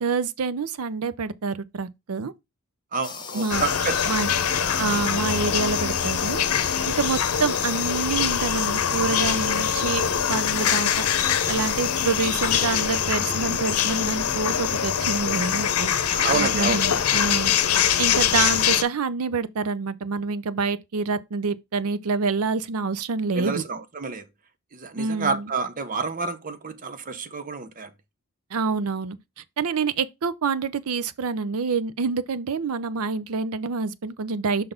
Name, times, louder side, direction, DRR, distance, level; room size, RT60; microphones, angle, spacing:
voice 1, 0.0-2.3 3.3-3.6 4.1-4.3 4.8-6.4 6.9-10.0 10.3-23.6 25.0-25.5 28.5-29.2 29.6-34.7, right 4 dB, 80° right, 0.5 m, -27 dB
voice 2, 2.9-4.2 4.6-5.1 16.1-16.8 23.3-24.2 24.7-27.9, right 4 dB, 40° right, 0.7 m, -29 dB
sound 1, 3.0-13.2, left 6 dB, 20° left, 0.9 m, -38 dB
sound 2, 3.5-18.8, left 8 dB, 85° left, 0.7 m, -23 dB
5.7 x 4.0 x 5.1 m
head